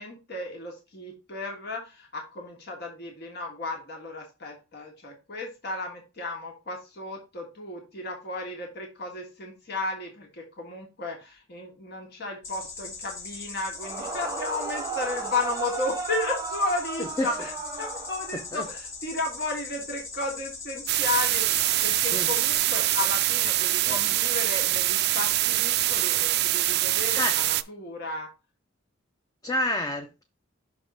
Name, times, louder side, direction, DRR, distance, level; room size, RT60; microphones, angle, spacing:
voice 1, 0.0-28.3, left 2 dB, 55° left, 1 dB, 1.6 m, -34 dB
sound 1, 12.4-22.6, left 4 dB, 75° left, 2.3 m, -40 dB
Yell / Screaming, 13.8-18.7, right 4 dB, 20° right, 0.9 m, -35 dB
voice 2, 18.3-18.6 22.1-22.3 23.9-24.0 27.1-27.4 29.4-30.2, left 1 dB, 20° left, 4 dB, 0.6 m, -29 dB
sound 2, 20.9-27.6, right 15 dB, 55° right, 0.3 m, -24 dB
6.1 x 3.6 x 5.1 m, 0.28 s
head